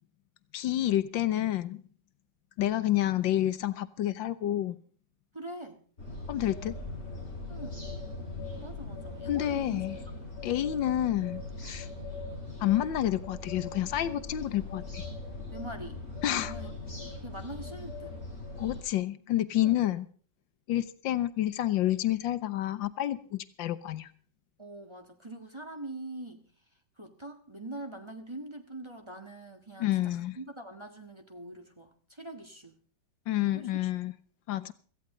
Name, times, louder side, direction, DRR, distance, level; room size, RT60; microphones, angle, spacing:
voice 1, 0.5-1.8 2.6-4.8 6.3-6.8 9.3-10.0 10.4-11.9 12.6-15.0 16.2-16.5 18.6-20.0 20.7-24.1 29.8-30.3 33.3-34.1 34.5-34.7, left 13 dB, 80° left, 14 dB, 1.6 m, -29 dB
voice 2, 5.3-5.8 7.5-7.9 8.6-9.8 10.1-10.2 15.5-16.0 16.4-18.2 19.6-19.8 24.6-26.4 27.0-32.8 33.4-33.8, right 1 dB, 15° right, 4 dB, 1.6 m, -43 dB
sound 1, 6.0-18.8, left 2 dB, 40° left, 8.0 m, -40 dB
17.5 x 14.5 x 3.8 m, 0.43 s
omnidirectional pair, 2.0 m